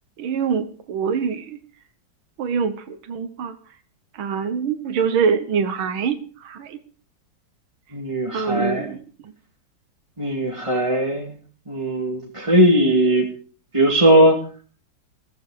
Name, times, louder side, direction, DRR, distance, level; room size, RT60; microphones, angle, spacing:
voice 1, 0.2-1.6 2.4-3.6 4.2-6.8 8.3-9.0, right 6 dB, 85° right, 8 dB, 2.0 m, -24 dB
voice 2, 7.9-8.9 10.2-11.3 11.7-13.3 13.7-14.4, right 1 dB, 15° right, -1 dB, 2.1 m, -18 dB
15.5 x 15.0 x 4.9 m, 0.41 s
omnidirectional pair, 2.2 m